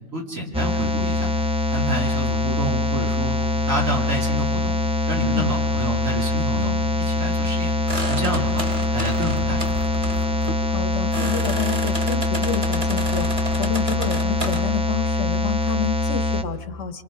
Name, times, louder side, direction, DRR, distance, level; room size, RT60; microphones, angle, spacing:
voice 1, 0.1-1.3 1.7-4.8 5.1-7.7 8.1-8.6 8.9-9.8, right 1 dB, 75° right, -2 dB, 3.5 m, -28 dB
sound 1, 0.5-16.4, left 3 dB, 5° right, 0.4 m, -23 dB
sound 2, 7.9-14.6, right 1 dB, 25° right, 2.1 m, -32 dB
voice 2, 10.7-17.0, left 8 dB, 65° left, 11 dB, 1.2 m, -29 dB
27.0 x 26.5 x 3.7 m, 1.4 s
omnidirectional pair, 1.4 m